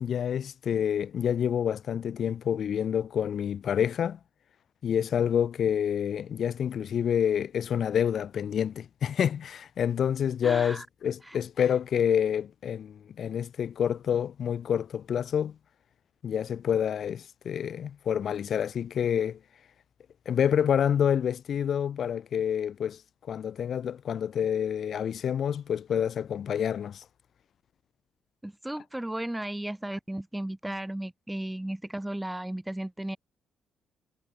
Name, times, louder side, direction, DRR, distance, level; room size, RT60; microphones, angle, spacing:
voice 1, 0.0-4.2 4.8-15.5 16.2-19.4 20.3-23.0 23.3-27.0, left 8 dB, 60° left, 0.7 m, -28 dB
voice 2, 10.4-10.8 11.3-11.4 28.4-33.2, right 1 dB, 10° right, 1.4 m, -35 dB
cardioid pair, 90°, 0 cm